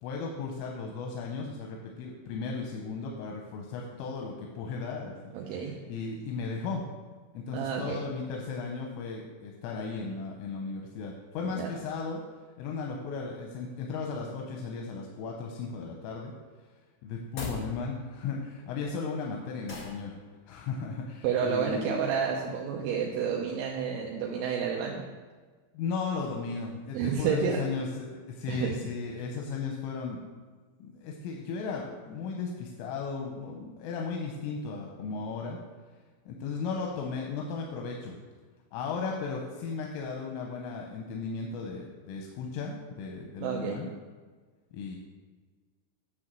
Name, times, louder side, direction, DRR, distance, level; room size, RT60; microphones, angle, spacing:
voice 1, 0.0-5.1 5.5-6.8 7.3-12.2 12.6-16.3 17.0-20.1 20.5-22.0 25.7-30.2 30.8-35.6 36.3-38.2 38.7-43.9 44.7-45.0, left 4 dB, 90° left, 0 dB, 3.4 m, -36 dB
voice 2, 5.3-5.7 7.5-8.0 11.5-11.7 21.2-25.0 26.9-27.6 28.5-28.7 43.4-43.8, right 7 dB, 80° right, -1 dB, 2.9 m, -30 dB
sound 1, 17.2-17.7 19.7-20.0, left 3 dB, 55° left, 1.4 m, -37 dB
9.7 x 4.0 x 7.4 m, 1.4 s
omnidirectional pair, 5.6 m